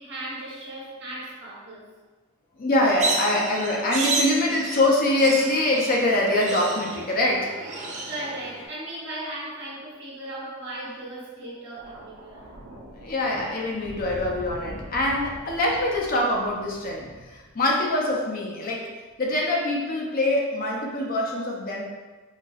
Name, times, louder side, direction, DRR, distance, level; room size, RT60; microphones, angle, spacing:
voice 1, 0.0-1.9 7.8-12.5, right 1 dB, 55° right, -6 dB, 1.0 m, -37 dB
voice 2, 2.6-7.5 13.0-18.9 19.2-21.8, left 1 dB, 40° left, -1 dB, 0.5 m, -24 dB
sound 1, 3.0-8.6, right 3 dB, 35° right, 0.4 m, -31 dB
Thunder, 11.8-18.1 19.1-19.4, equal, 90° right, 0.9 m, -43 dB
3.9 x 2.9 x 2.4 m, 1.3 s
head